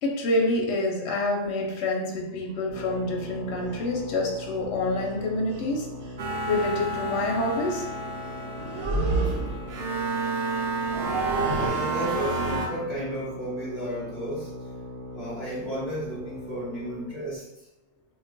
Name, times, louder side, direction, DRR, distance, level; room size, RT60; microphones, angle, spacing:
voice 1, 0.0-5.9 6.5-7.9, left 2 dB, 65° left, 0 dB, 0.8 m, -27 dB
sound 1, 2.7-17.2, equal, 20° left, 0.5 m, -40 dB
sound 2, 3.6-3.8 5.0-5.1 5.5-5.7 6.0-6.2 8.5-9.8 10.8-11.7, right 3 dB, 80° right, 1.1 m, -28 dB
sound 3, 6.2-12.7, right 3 dB, 65° right, 0.7 m, -30 dB
voice 2, 10.6-11.1 11.5-14.5 15.1-17.7, equal, 5° right, -11 dB, 1.2 m, -34 dB
2.3 x 2.1 x 3.8 m, 0.89 s
omnidirectional pair, 1.4 m